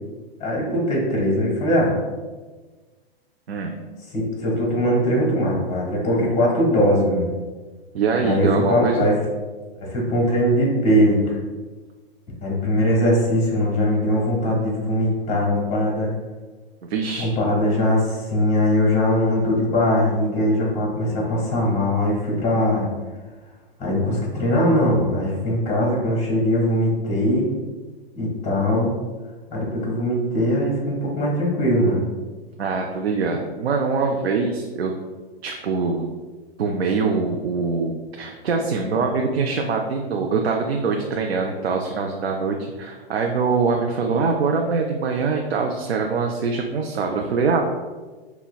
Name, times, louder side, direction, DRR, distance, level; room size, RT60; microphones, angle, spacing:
voice 1, 0.4-2.0 4.1-7.3 8.2-9.2 9.8-11.4 12.4-16.1 17.2-22.9 23.8-27.5 28.1-28.9 29.5-32.1, equal, 20° left, -3 dB, 1.3 m, -21 dB
voice 2, 7.9-9.1 16.8-17.3 32.6-34.9 35.4-36.0 36.6-47.6, right 4 dB, 90° right, 2 dB, 0.5 m, -23 dB
5.8 x 2.2 x 2.3 m, 1.3 s
hypercardioid pair, 120°, 31 cm